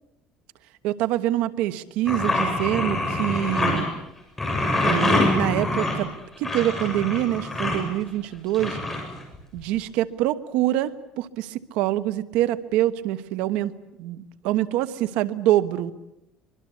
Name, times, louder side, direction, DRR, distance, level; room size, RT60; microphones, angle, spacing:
voice 1, 0.8-3.9 4.8-6.1 6.4-8.8 9.5-13.7 14.0-15.9, right 13 dB, 80° right, 12 dB, 1.2 m, -25 dB
sound 1, 2.1-3.8 4.4-7.8 8.5-9.6, left 2 dB, 15° left, 7.5 m, -25 dB
25.0 x 23.0 x 8.4 m, 0.88 s
cardioid pair, 140°, 2 cm